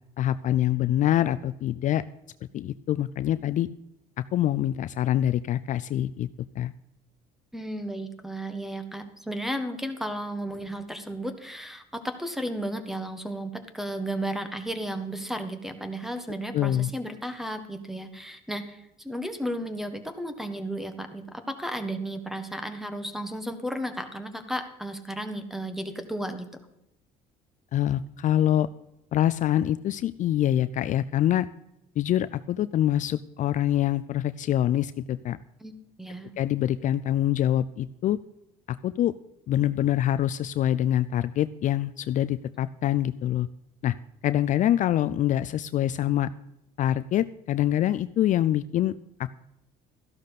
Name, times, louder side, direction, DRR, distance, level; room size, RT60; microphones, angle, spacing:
voice 1, 0.2-2.0 2.5-3.7 4.3-6.3 6.6-6.7 16.5-16.9 27.7-28.7 29.1-31.5 32.0-35.4 36.4-38.2 38.7-39.1 39.5-43.5 43.8-43.9 44.2-46.3 46.8-48.9 49.2-49.3, left 12 dB, 50° left, 14 dB, 0.4 m, -25 dB
voice 2, 7.5-26.5 35.6-35.7 36.0-36.3, right 1 dB, ahead, 9 dB, 1.5 m, -34 dB
13.5 x 11.5 x 4.1 m, 0.83 s
cardioid pair, 115°, 16 cm